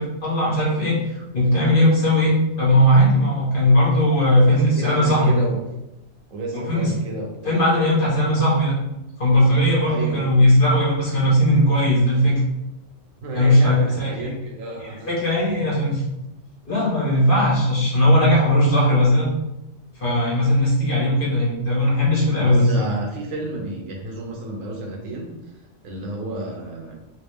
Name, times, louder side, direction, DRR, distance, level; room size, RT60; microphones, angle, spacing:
voice 1, 0.0-5.3 6.5-6.9 7.4-8.8 9.2-12.4 13.3-14.3 15.1-16.0 16.7-19.3 20.0-22.8, left 1 dB, 45° left, -6 dB, 1.4 m, -18 dB
voice 2, 4.4-5.6 6.3-7.6 9.8-10.2 13.2-15.1 15.5-15.7 22.4-25.4 25.8-27.0, right 2 dB, 85° right, 0 dB, 1.2 m, -31 dB
3.2 x 3.2 x 3.3 m, 0.92 s
omnidirectional pair, 1.3 m